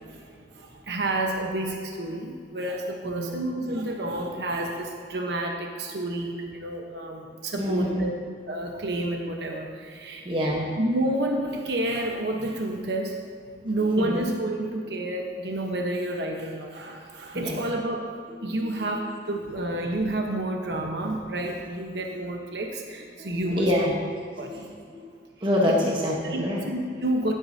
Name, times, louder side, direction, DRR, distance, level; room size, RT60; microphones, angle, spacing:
voice 1, 0.1-8.1 8.5-10.3 10.8-13.1 13.6-18.1 18.4-23.6 24.4-24.6 26.2-27.3, right 1 dB, 70° right, 1 dB, 1.1 m, -29 dB
voice 2, 3.0-3.4 7.6-8.1 9.1-9.2 10.2-10.7 13.9-14.2 17.3-17.6 18.6-19.3 23.2-23.9 24.4-25.0 25.4-26.6 26.9-27.0, left 1 dB, 30° right, -3 dB, 1.2 m, -27 dB
16.5 x 8.6 x 2.8 m, 2.2 s
head